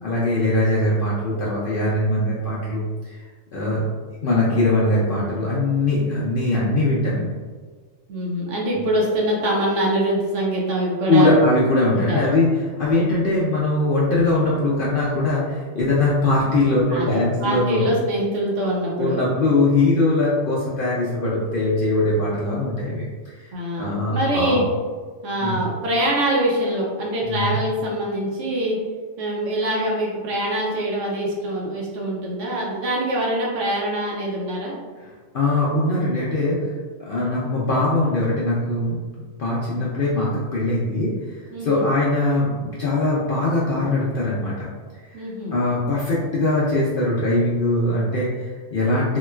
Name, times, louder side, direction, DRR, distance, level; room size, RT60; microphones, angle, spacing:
voice 1, 0.0-3.2 3.5-3.8 4.2-7.4 11.1-17.9 19.0-23.5 23.8-24.6 25.4-25.6 27.2-27.6 35.0-44.7 44.9-49.2, left 2 dB, 60° left, -6 dB, 0.6 m, -21 dB
voice 2, 8.1-11.3 11.9-12.2 16.9-19.2 23.5-24.6 25.2-28.8 29.2-34.8 41.5-41.9 45.1-45.6, right 1 dB, 75° right, -3 dB, 1.0 m, -24 dB
3.1 x 2.8 x 2.3 m, 1.5 s
omnidirectional pair, 1.3 m